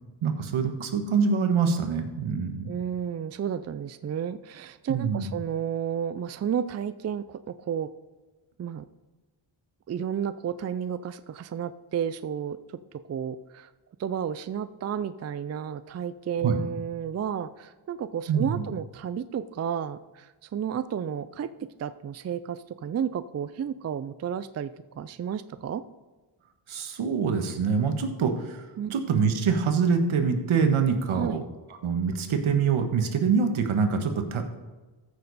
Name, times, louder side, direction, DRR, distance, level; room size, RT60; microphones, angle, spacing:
voice 1, 0.2-2.7 4.9-5.3 16.4-16.6 18.3-18.6 26.7-28.6 28.9-31.4 31.8-34.6, right 5 dB, 75° right, 6 dB, 1.5 m, -25 dB
voice 2, 2.7-7.9 8.6-8.9 9.9-12.6 13.1-13.7 14.0-21.5 21.8-25.8 28.8-28.9 31.1-31.4, right 8 dB, 35° right, 13 dB, 0.4 m, -32 dB
14.5 x 6.7 x 4.1 m, 1.2 s
cardioid pair, 105°, 49 cm